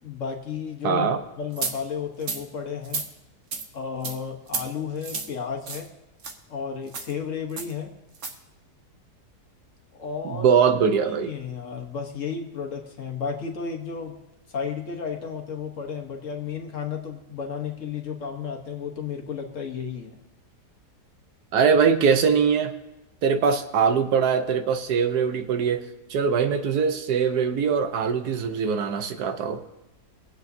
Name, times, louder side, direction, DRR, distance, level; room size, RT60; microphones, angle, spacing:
voice 1, 0.0-1.1 1.4-3.0 3.7-5.9 6.5-7.9 9.9-10.5 11.2-14.1 14.5-20.2, left 6 dB, 50° left, 2 dB, 1.4 m, -33 dB
voice 2, 0.8-1.2 10.2-11.3 21.5-22.7 23.2-25.8 26.1-29.6, right 6 dB, 75° right, 8 dB, 1.3 m, -22 dB
sound 1, 1.6-1.7 2.2-2.4 2.8-3.1 3.5-3.6 4.0-4.2 4.5-4.6 5.0-5.3 5.6-5.9 6.2-6.3 6.9-7.1 7.6-7.7 8.1-8.3, right 4 dB, 50° right, 1.3 m, -31 dB
21.5 x 8.1 x 2.7 m, 1.0 s
omnidirectional pair, 1.7 m